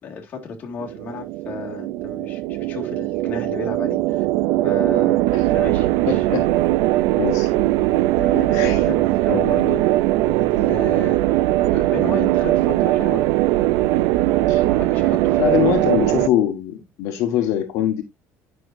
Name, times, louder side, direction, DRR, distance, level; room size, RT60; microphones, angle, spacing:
voice 1, 0.0-4.3 4.6-6.4 8.2-9.8 10.2-11.2 11.7-13.2 14.6-15.8, left 5 dB, 30° left, 2.1 m, -34 dB
sound 1, 0.8-16.3, right 16 dB, 80° right, 0.3 m, -20 dB
voice 2, 6.1-6.5 7.2-7.5 8.5-8.9 9.3-9.7 14.5-14.6 15.4-18.0, left 11 dB, 60° left, 1.3 m, -23 dB
9.9 x 5.8 x 2.5 m
cardioid pair, 175°, 6 cm